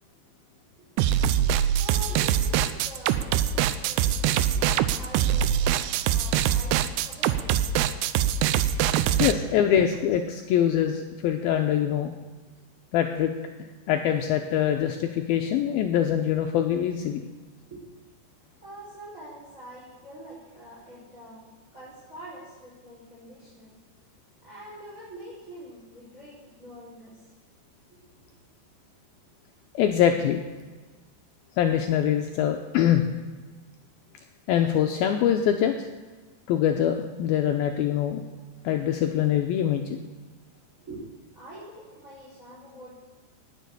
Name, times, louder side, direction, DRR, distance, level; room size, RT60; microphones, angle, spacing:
sound 1, 1.0-9.3, right 10 dB, 80° right, 2.6 m, -23 dB
voice 1, 1.8-8.0 17.7-17.8 18.6-21.4 21.7-23.7 24.4-27.3 27.9-28.3 40.8-41.1 41.3-43.0, right 1 dB, 20° right, -8 dB, 5.1 m, -45 dB
voice 2, 9.2-12.1 12.9-13.3 13.9-17.2 29.7-30.4 31.6-33.0 34.5-35.9 36.5-38.2 38.6-40.0, left 10 dB, 85° left, 4 dB, 2.2 m, -24 dB
18.5 x 7.4 x 6.8 m, 1.3 s
omnidirectional pair, 5.0 m